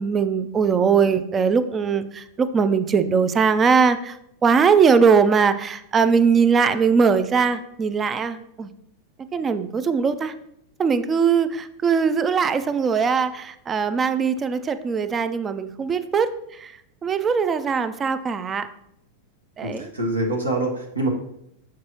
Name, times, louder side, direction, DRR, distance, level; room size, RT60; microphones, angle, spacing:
voice 1, 0.0-4.2 4.4-8.7 9.3-10.3 10.8-16.3 16.6-16.7 17.0-18.7 19.6-19.9, right 6 dB, 20° right, 12 dB, 0.4 m, -20 dB
voice 2, 19.6-21.1, right 2 dB, 80° right, 1 dB, 1.0 m, -25 dB
7.3 x 4.6 x 2.9 m, 0.76 s
figure-of-eight pair, 90°, 0 cm